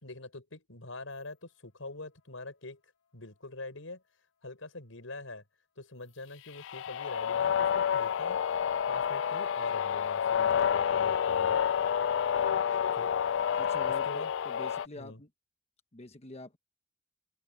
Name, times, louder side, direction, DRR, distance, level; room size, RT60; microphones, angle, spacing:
voice 1, 0.0-2.8 3.1-4.0 4.4-5.4 5.8-8.4 8.9-11.6 13.0-13.2 14.0-14.3 15.0-15.2, left 2 dB, 90° left, 5.1 m, -44 dB
sound 1, 6.6-14.9, left 8 dB, 70° left, 0.4 m, -29 dB
voice 2, 13.6-15.3 15.9-16.6, left 2 dB, 30° left, 1.1 m, -46 dB
open air
head